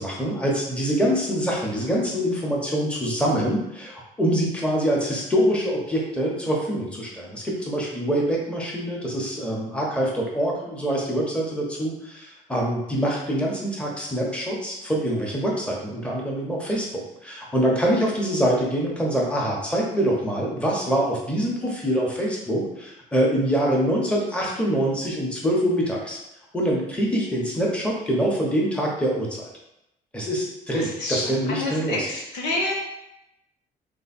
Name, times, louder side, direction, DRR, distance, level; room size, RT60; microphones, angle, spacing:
voice 1, 0.0-26.2 26.5-29.5 30.1-32.1, equal, 5° left, -3 dB, 1.2 m, -25 dB
voice 2, 30.7-32.7, left 2 dB, 85° left, -2 dB, 1.2 m, -28 dB
3.4 x 3.3 x 4.4 m, 0.86 s
cardioid pair, 110°, 17 cm